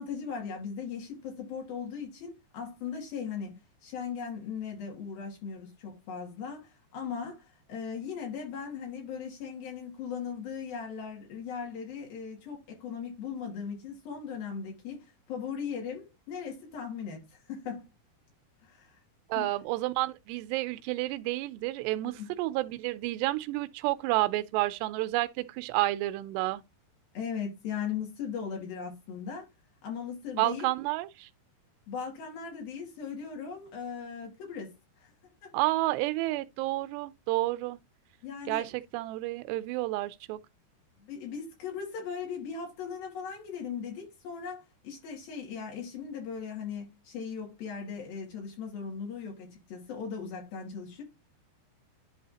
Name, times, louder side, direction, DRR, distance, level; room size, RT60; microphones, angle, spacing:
voice 1, 0.0-17.8 18.6-19.0 19.4-19.5 22.0-22.3 27.1-29.5 29.8-30.7 31.9-35.1 35.4-35.5 38.2-38.7 41.0-51.0, left 6 dB, 65° left, 4.0 m, -38 dB
voice 2, 19.3-26.6 30.4-31.3 35.5-37.8 38.5-40.4, right 18 dB, 90° right, 2.7 m, -30 dB
11.0 x 3.9 x 2.8 m
omnidirectional pair, 4.7 m